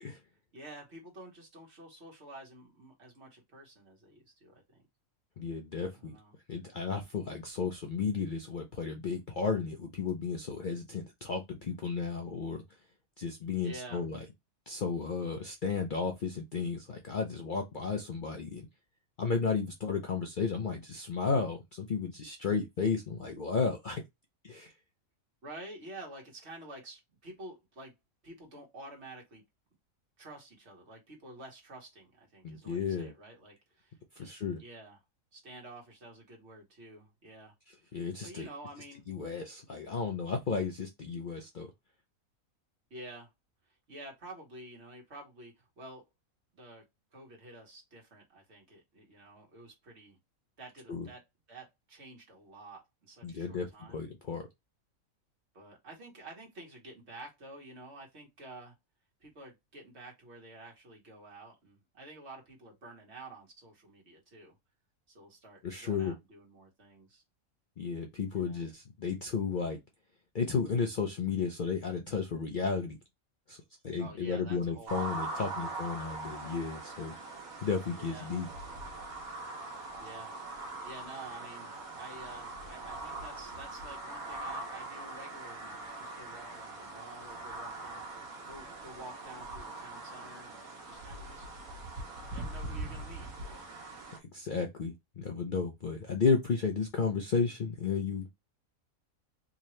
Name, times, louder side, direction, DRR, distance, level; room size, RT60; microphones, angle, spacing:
voice 1, 0.5-4.8 5.9-6.3 13.6-14.1 25.4-27.9 28.2-29.4 30.2-35.0 35.3-37.5 37.8-39.1 42.9-43.3 43.9-46.0 46.5-46.8 47.1-50.2 50.6-51.2 51.5-54.0 55.5-58.7 59.2-64.6 65.1-67.2 68.3-68.6 74.0-75.7 77.9-78.3 80.0-80.3 80.8-88.1 88.4-91.4 92.3-93.7, right 2 dB, 50° right, 1.8 m, -50 dB
voice 2, 5.4-6.2 6.5-12.6 13.2-14.2 14.7-18.7 19.2-24.0 24.4-24.7 32.4-33.1 34.2-34.6 37.9-38.5 39.1-41.7 50.9-51.1 53.2-54.5 65.6-66.2 67.8-69.8 70.3-73.0 73.5-77.2 77.6-78.5 94.3-98.3, left 5 dB, 55° left, 0.6 m, -33 dB
sound 1, 74.9-94.2, right 2 dB, 90° right, 1.5 m, -42 dB
3.7 x 2.8 x 3.1 m
omnidirectional pair, 1.5 m